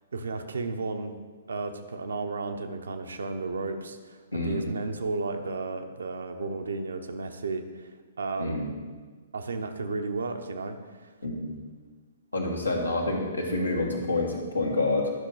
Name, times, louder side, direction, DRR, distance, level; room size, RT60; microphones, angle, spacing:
voice 1, 0.1-1.1 1.5-8.7 9.3-11.1, right 3 dB, 65° right, 7 dB, 0.7 m, -33 dB
voice 2, 4.3-4.6 8.4-8.7 11.2-11.5 12.3-15.1, left 2 dB, 85° left, -1 dB, 1.6 m, -28 dB
11.0 x 6.0 x 3.9 m, 1.4 s
figure-of-eight pair, 120°, 0 cm